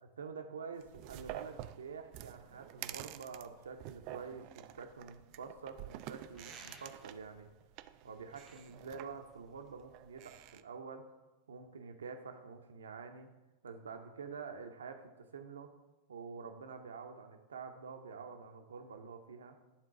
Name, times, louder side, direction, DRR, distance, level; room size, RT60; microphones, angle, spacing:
voice 1, 0.0-7.5 8.0-11.1 11.5-13.3 13.6-15.7 16.1-19.6, right 5 dB, 70° right, 6 dB, 0.7 m, -47 dB
sound 1, 0.8-10.6, right 14 dB, 45° right, 0.3 m, -49 dB
sound 2, 6.3-7.3 8.1-9.8, left 1 dB, 15° left, 0.9 m, -59 dB
10.5 x 3.7 x 4.8 m, 1.1 s
figure-of-eight pair, 90°, 0 cm